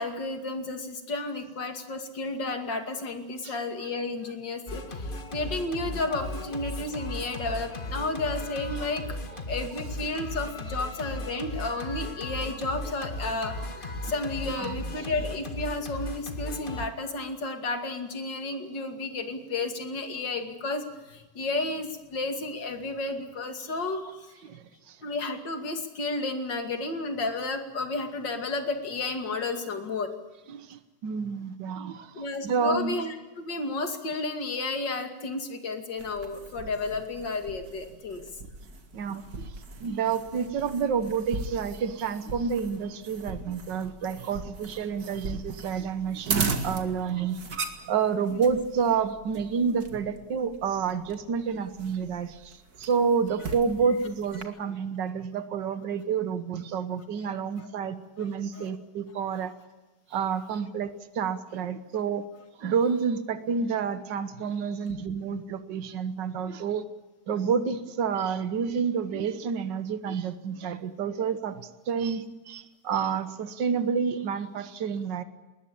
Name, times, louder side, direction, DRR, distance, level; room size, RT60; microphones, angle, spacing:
voice 1, 0.0-9.0 9.5-24.3 25.0-30.1 32.1-38.2 57.6-57.7 58.5-58.7, left 3 dB, 90° left, 6 dB, 3.1 m, -32 dB
Singing, 4.7-16.9, left 1 dB, 30° left, 1.9 m, -36 dB
voice 2, 24.4-25.0 30.5-33.0 38.9-39.5 39.8-47.4 47.9-59.5 60.1-62.2 62.6-66.8 67.3-75.2, right 6 dB, 85° right, 11 dB, 1.8 m, -29 dB
sound 1, 36.0-54.4, right 4 dB, 60° right, 2.4 m, -38 dB
20.5 x 20.0 x 8.7 m, 1.1 s
omnidirectional pair, 1.9 m